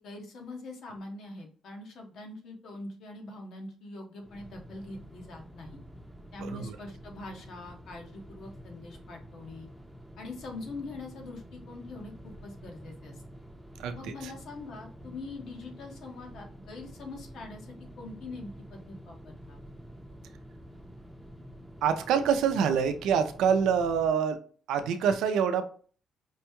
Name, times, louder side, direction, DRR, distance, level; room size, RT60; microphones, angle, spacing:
voice 1, 0.0-5.8 6.3-9.7 10.2-13.2 13.9-19.6, left 2 dB, 70° left, 1 dB, 1.1 m, -43 dB
sound 1, 4.2-24.1, equal, ahead, 0.6 m, -48 dB
voice 2, 6.4-6.8 13.8-14.3 21.8-24.4 24.7-25.6, right 7 dB, 90° right, 7 dB, 0.5 m, -26 dB
5.2 x 2.2 x 2.9 m, 0.43 s
cardioid pair, 95°, 0 cm